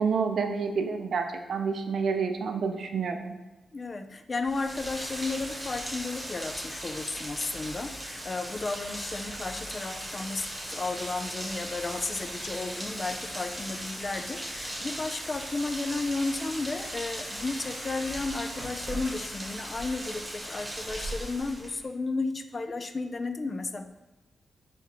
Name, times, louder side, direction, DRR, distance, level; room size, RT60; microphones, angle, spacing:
voice 1, 0.0-3.3, right 5 dB, 75° right, 6 dB, 0.5 m, -28 dB
voice 2, 3.7-23.9, left 3 dB, 40° left, 8 dB, 0.4 m, -33 dB
Rain, 4.4-21.8, equal, 15° right, 1.3 m, -38 dB
4.4 x 3.9 x 2.9 m, 1.1 s
cardioid pair, 85°, 0 cm